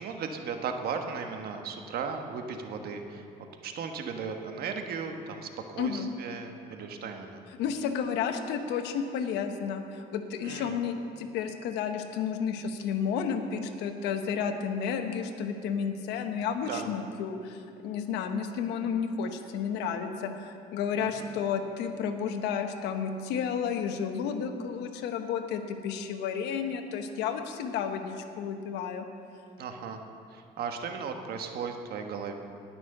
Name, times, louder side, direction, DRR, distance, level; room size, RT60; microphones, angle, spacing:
voice 1, 0.0-3.2 3.6-5.5 5.7-7.4 10.4-10.8 16.6-16.9 21.0-21.3 29.6-30.0 30.3-32.3, right 5 dB, 65° right, 5 dB, 1.3 m, -36 dB
voice 2, 5.8-6.1 7.6-29.1, left 7 dB, 90° left, 7 dB, 1.1 m, -32 dB
19.0 x 6.3 x 6.6 m, 2.5 s
cardioid pair, 110°, 17 cm